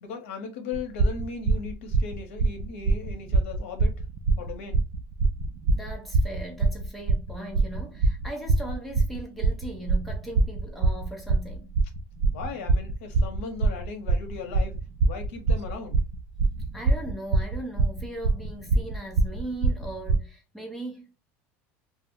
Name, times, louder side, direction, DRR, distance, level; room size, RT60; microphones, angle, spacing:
voice 1, 0.0-4.0 4.4-4.8 12.3-14.8 15.0-16.0, left 5 dB, 85° left, 0.8 m, -37 dB
sound 1, 0.7-20.2, right 3 dB, 55° right, 0.4 m, -24 dB
voice 2, 5.7-11.8 16.7-21.0, right 1 dB, ahead, 0.8 m, -38 dB
2.2 x 2.1 x 3.5 m
supercardioid pair, 135°, 7 cm